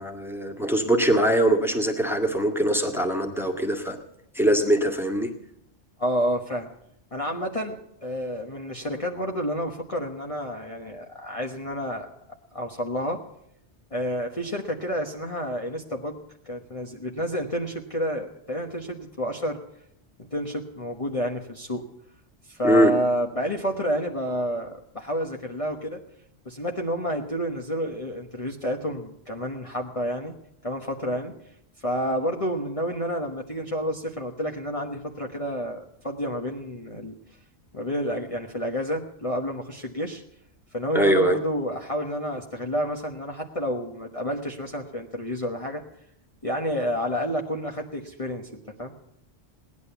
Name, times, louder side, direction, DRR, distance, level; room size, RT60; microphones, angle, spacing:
voice 1, 0.0-4.0 4.3-5.3 22.6-22.9 40.9-41.4, right 1 dB, ahead, 3 dB, 1.8 m, -22 dB
voice 2, 6.0-6.7 7.1-12.1 12.5-13.2 13.9-19.6 20.2-21.8 22.5-26.0 26.4-30.3 30.6-31.3 31.8-37.2 37.7-40.2 40.7-45.8 46.4-48.9, equal, 30° left, 0 dB, 1.3 m, -29 dB
18.0 x 11.0 x 6.9 m, 0.76 s
omnidirectional pair, 1.2 m